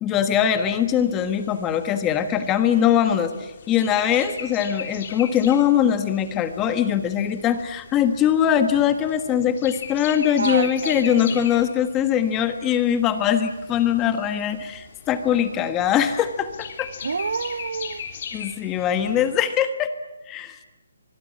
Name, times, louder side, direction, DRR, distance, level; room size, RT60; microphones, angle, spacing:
voice 1, 0.0-16.9 18.3-19.9 20.3-20.5, left 9 dB, 15° left, 10 dB, 1.4 m, -22 dB
sound 1, 0.6-19.4, left 7 dB, 35° left, 3.4 m, -40 dB
voice 2, 10.4-11.4 17.0-18.0, right 4 dB, 70° right, 15 dB, 1.2 m, -28 dB
25.5 x 21.5 x 8.7 m, 1.1 s
hypercardioid pair, 170°, 0 cm